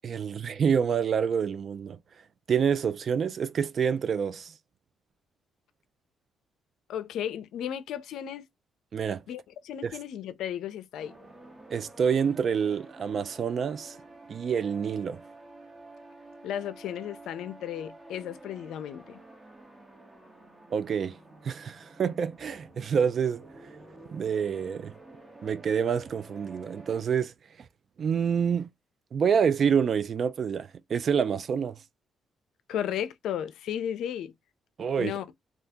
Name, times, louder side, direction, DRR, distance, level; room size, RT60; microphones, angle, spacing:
voice 1, 0.0-2.0 2.5-4.5 8.9-9.2 9.8-9.9 11.7-14.0 14.3-15.2 20.7-21.2 21.4-23.4 24.1-24.9 25.4-27.3 28.0-28.7 29.1-31.8 34.8-35.1, right 7 dB, 55° right, 0.4 m, -27 dB
voice 2, 6.9-8.5 9.3-11.1 16.4-19.2 32.7-34.3 35.0-35.3, left 10 dB, 80° left, 0.4 m, -34 dB
sound 1, 11.0-27.0, right 2 dB, 25° right, 1.0 m, -50 dB
2.7 x 2.4 x 3.5 m
cardioid pair, 90°, 0 cm